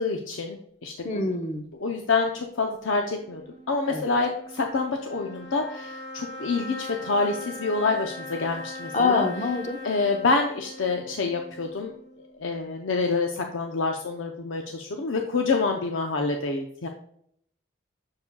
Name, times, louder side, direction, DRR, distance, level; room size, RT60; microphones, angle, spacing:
voice 1, 0.0-1.3 1.8-9.2 9.8-11.9 12.4-16.9, left 3 dB, 80° left, 3 dB, 0.6 m, -27 dB
voice 2, 1.0-1.7 3.9-4.0 8.9-9.8, left 3 dB, 35° left, 5 dB, 0.8 m, -25 dB
sound 1, 3.1-12.5, left 1 dB, 55° left, 1.4 m, -41 dB
7.1 x 6.7 x 2.3 m, 0.69 s
head